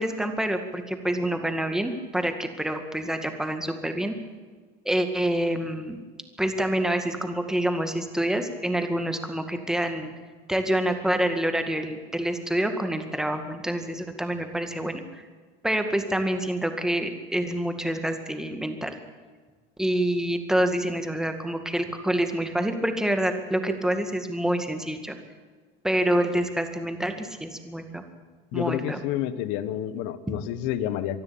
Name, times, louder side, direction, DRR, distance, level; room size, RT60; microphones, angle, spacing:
voice 1, 0.0-4.2 4.9-6.0 6.4-10.1 10.5-15.0 15.6-18.9 19.8-25.2 25.8-28.0 28.5-29.0, right 1 dB, 5° right, 6 dB, 2.0 m, -27 dB
voice 2, 28.5-31.2, left 11 dB, 75° left, 14 dB, 1.3 m, -29 dB
24.0 x 12.5 x 8.7 m, 1.5 s
cardioid pair, 145°, 19 cm